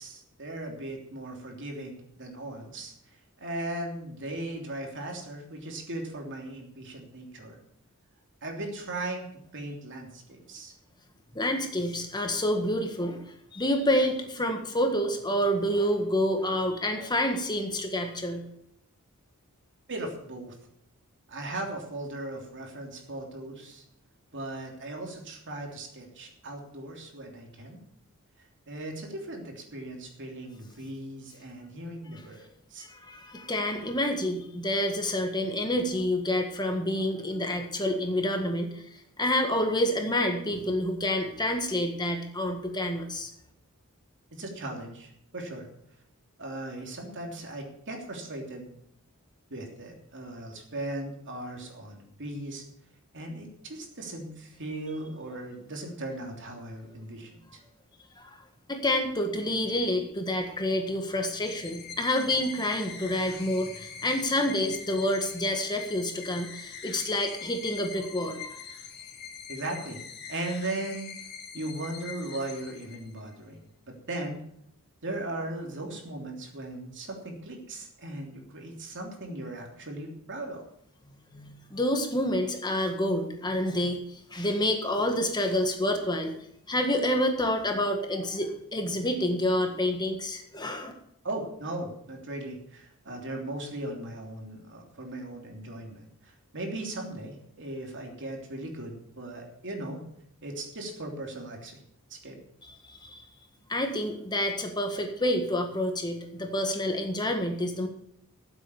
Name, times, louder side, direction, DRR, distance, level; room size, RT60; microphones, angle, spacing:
voice 1, 0.0-2.9 3.4-7.6 8.4-9.3 9.5-10.7 19.9-20.5 21.3-23.8 24.3-27.8 28.4-32.9 44.3-45.7 46.4-48.7 49.5-52.6 53.1-57.6 69.5-70.0 70.3-71.1 71.5-73.6 73.8-74.4 75.0-80.6 91.2-100.0 100.4-101.8 102.1-102.4, right 1 dB, 55° right, 1 dB, 3.1 m, -38 dB
voice 2, 11.3-13.2 13.5-18.4 32.8-43.3 58.2-58.4 58.7-68.6 81.3-86.3 86.7-90.9 102.8-103.2 103.7-107.9, left 1 dB, 20° left, 4 dB, 1.6 m, -28 dB
sound 1, 61.4-73.3, left 7 dB, 50° left, 2.1 m, -44 dB
14.0 x 8.1 x 7.0 m, 0.71 s
head